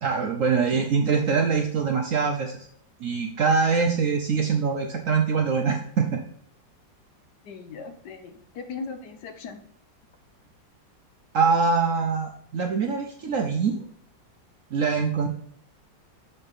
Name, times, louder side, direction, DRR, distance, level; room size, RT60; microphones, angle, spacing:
voice 1, 0.0-2.5 3.0-6.2 11.3-13.8 14.7-15.3, right 5 dB, 65° right, 3 dB, 0.8 m, -23 dB
voice 2, 7.4-9.6, left 4 dB, 70° left, 7 dB, 1.3 m, -38 dB
6.6 x 5.3 x 4.1 m, 0.63 s
omnidirectional pair, 2.0 m